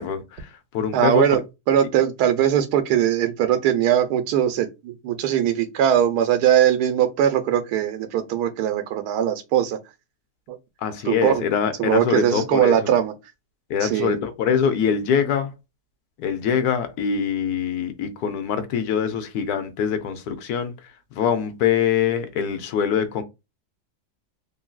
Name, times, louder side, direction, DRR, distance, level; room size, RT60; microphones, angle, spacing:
voice 1, 0.0-1.4 10.8-12.9 13.7-15.5 16.2-20.7 21.2-23.2, left 7 dB, 80° left, 1.1 m, -24 dB
voice 2, 0.9-1.4 1.7-9.8 10.5-10.6 11.1-11.3 11.8-13.1 13.8-14.1, right 10 dB, 85° right, 1.2 m, -20 dB
3.0 x 2.6 x 2.2 m
omnidirectional pair, 1.7 m